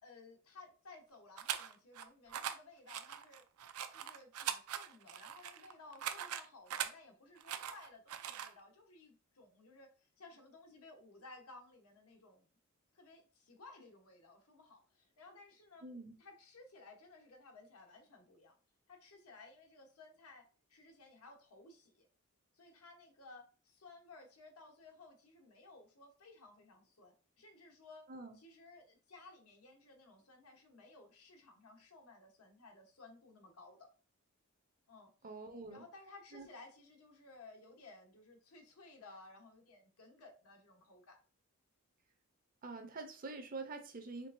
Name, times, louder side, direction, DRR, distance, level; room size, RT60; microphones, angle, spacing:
voice 1, 0.0-3.5 3.9-12.5 12.9-15.8 16.2-18.5 18.9-20.4 20.7-22.1 22.5-28.0 28.3-33.9 34.9-35.3 35.7-41.2, left 3 dB, 85° left, 3 dB, 1.1 m, -58 dB
sound 1, 1.4-2.0 2.3-2.5 2.9-6.9 7.4-8.5, right 9 dB, 85° right, 0.4 m, -41 dB
voice 2, 15.8-16.2 28.1-28.4 35.2-35.8 36.3-36.5 42.6-44.3, right 3 dB, 40° right, 7 dB, 0.6 m, -46 dB
4.5 x 3.4 x 2.6 m, 0.36 s
head